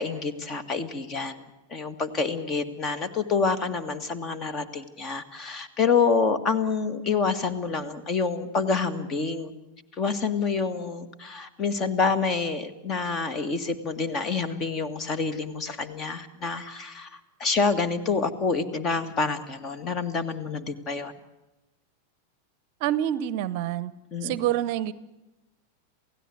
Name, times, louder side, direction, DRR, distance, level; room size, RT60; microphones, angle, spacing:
voice 1, 0.0-1.4 1.7-9.5 9.9-21.1 24.1-24.4, left 4 dB, 30° left, 13 dB, 1.9 m, -27 dB
voice 2, 22.8-23.9 24.2-24.9, right 12 dB, 45° right, 19 dB, 0.8 m, -27 dB
28.0 x 17.0 x 8.0 m, 1.0 s
figure-of-eight pair, 90°, 0 cm